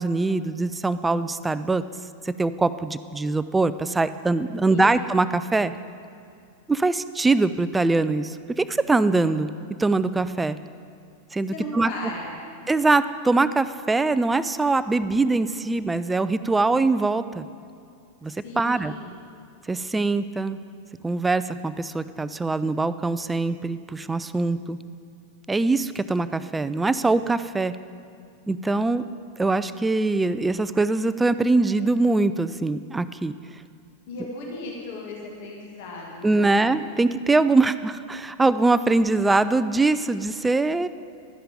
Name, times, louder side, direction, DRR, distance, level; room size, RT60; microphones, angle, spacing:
voice 1, 0.0-1.8 2.2-5.7 6.7-9.5 9.8-10.6 11.3-11.9 12.7-17.4 18.2-18.9 19.7-20.6 21.0-24.8 25.5-27.7 28.5-29.0 29.4-33.3 36.2-40.9, right 3 dB, 10° right, 14 dB, 0.4 m, -23 dB
voice 2, 11.5-12.4 18.4-19.1 34.1-36.8, left 2 dB, 50° left, -2 dB, 2.1 m, -36 dB
12.5 x 10.0 x 5.1 m, 2.4 s
figure-of-eight pair, 90°, 0 cm